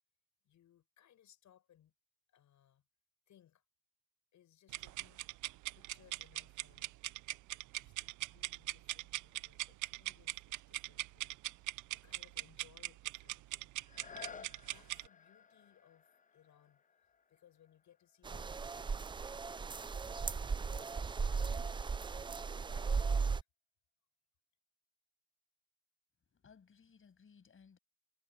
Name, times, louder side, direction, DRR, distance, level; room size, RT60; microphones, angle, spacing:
voice 1, 0.4-1.9 2.3-2.8 3.3-3.6 4.3-5.3 5.7-7.0 7.8-17.0 17.3-19.1 19.5-22.1 22.6-23.5, left 11 dB, 70° left, 7.7 m, -67 dB
sound 1, 4.7-15.1, right 17 dB, 80° right, 0.5 m, -42 dB
sound 2, 13.8-19.4 20.0-20.1, left 6 dB, 25° left, 0.6 m, -56 dB
sound 3, 18.2-23.4, right 5 dB, 15° right, 0.3 m, -36 dB
voice 2, 26.3-27.8, left 6 dB, 45° left, 7.3 m, -62 dB
cardioid pair, 90°, 30 cm